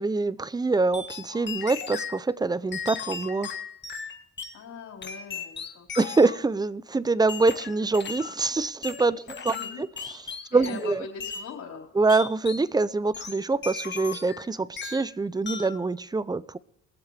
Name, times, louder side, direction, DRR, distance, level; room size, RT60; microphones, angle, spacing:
voice 1, 0.0-3.5 6.0-9.5 10.5-11.0 12.0-16.6, right 3 dB, 15° right, 0.5 m, -25 dB
sound 1, 0.9-2.2 2.7-4.6 5.0-6.4 7.3-8.4 8.8-10.9 11.2-11.5 12.1-12.7 13.1-14.5 14.8-15.1 15.5-15.8, left 6 dB, 35° left, 1.7 m, -37 dB
voice 2, 4.5-5.9 9.5-9.8 10.5-11.9, left 6 dB, 65° left, 4.3 m, -41 dB
21.0 x 7.4 x 3.4 m
cardioid pair, 90°, 30 cm